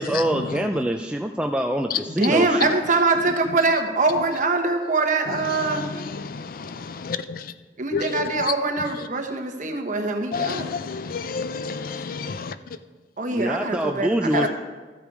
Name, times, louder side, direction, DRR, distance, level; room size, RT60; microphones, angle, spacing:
voice 1, 0.0-2.8 13.3-14.5, right 1 dB, 5° right, 0.4 m, -25 dB
voice 2, 2.2-5.9 7.8-10.7 13.2-14.5, right 3 dB, 45° right, 1.2 m, -23 dB
voice 3, 5.5-7.4 7.9-8.5 10.3-12.5 14.3-14.5, left 5 dB, 55° left, 0.5 m, -30 dB
13.0 x 8.2 x 4.7 m
head